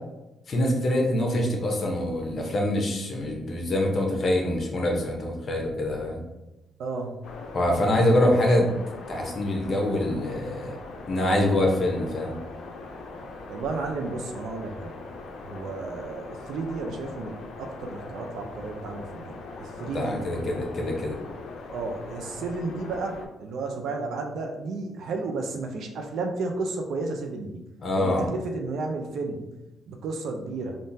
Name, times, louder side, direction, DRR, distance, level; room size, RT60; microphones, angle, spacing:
voice 1, 0.5-6.2 7.5-8.7 9.1-10.8 11.1-12.4 19.8-21.2 27.8-28.3, left 1 dB, 45° left, 1 dB, 0.8 m, -25 dB
voice 2, 6.8-7.2 13.5-14.9 15.4-20.2 21.7-27.6 27.9-29.5 29.9-30.8, right 3 dB, 75° right, 3 dB, 0.5 m, -32 dB
sound 1, 7.2-23.3, left 3 dB, 75° left, 0.5 m, -41 dB
3.6 x 2.5 x 2.7 m, 1.0 s
cardioid pair, 90°, 0 cm